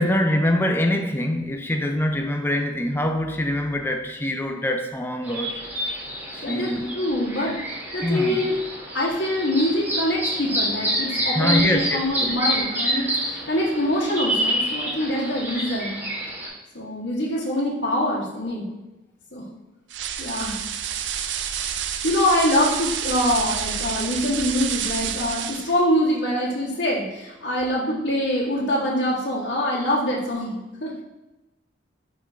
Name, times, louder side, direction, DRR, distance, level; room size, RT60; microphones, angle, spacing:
voice 1, 0.0-5.6 6.3-6.9 8.0-8.4 11.4-12.3, left 1 dB, 10° left, 4 dB, 0.4 m, -24 dB
sound 1, 5.2-16.5, equal, 10° right, 1.4 m, -28 dB
voice 2, 6.4-7.5 7.9-8.5 8.9-16.0 16.7-18.7 19.3-19.4 20.2-20.6 22.0-30.9, left 1 dB, 85° left, -5 dB, 1.6 m, -24 dB
sound 2, 19.9-25.8, right 9 dB, 75° right, 0.4 m, -29 dB
9.7 x 3.7 x 2.7 m, 1.0 s
head